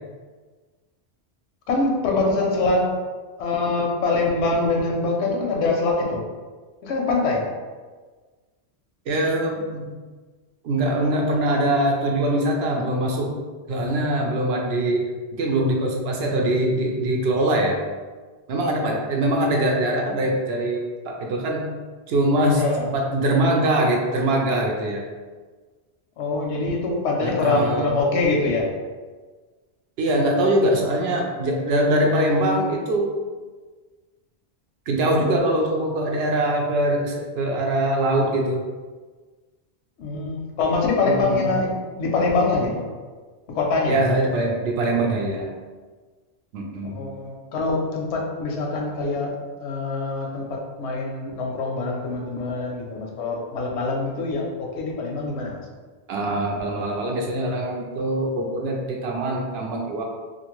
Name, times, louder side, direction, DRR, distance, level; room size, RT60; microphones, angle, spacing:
voice 1, 1.7-2.9 3.4-6.2 6.8-7.5 22.6-22.9 26.2-28.7 40.0-42.9 43.5-43.9 46.9-49.3 49.6-55.6, left 3 dB, 85° left, 0 dB, 0.9 m, -24 dB
voice 2, 9.1-9.9 10.6-13.3 13.7-15.0 15.4-17.8 18.5-21.7 22.1-22.6 22.9-25.0 27.2-27.9 30.0-33.1 34.9-38.6 41.0-41.5 43.9-45.5 46.5-47.0 56.1-60.0, right 1 dB, 70° right, 0 dB, 0.8 m, -23 dB
2.6 x 2.5 x 2.9 m, 1.4 s
omnidirectional pair, 1.1 m